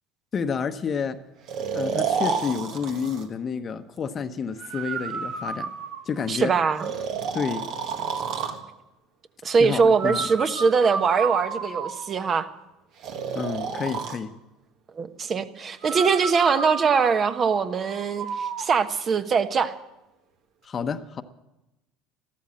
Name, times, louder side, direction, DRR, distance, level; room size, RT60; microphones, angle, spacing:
voice 1, 0.3-1.2 1.7-5.7 6.1-6.5 7.3-7.7 9.6-10.3 13.3-14.3 20.6-21.2, left 6 dB, 35° left, 9 dB, 0.9 m, -29 dB
Breathing, 1.5-3.3 4.6-6.3 6.8-8.6 10.0-12.2 13.0-14.2 15.8-18.7, right 5 dB, 60° right, 1.7 m, -31 dB
voice 2, 6.3-6.9 9.4-12.5 15.0-19.7, right 5 dB, 40° right, 10 dB, 1.2 m, -22 dB
14.0 x 13.0 x 7.6 m, 0.94 s
hypercardioid pair, 80°, 0 cm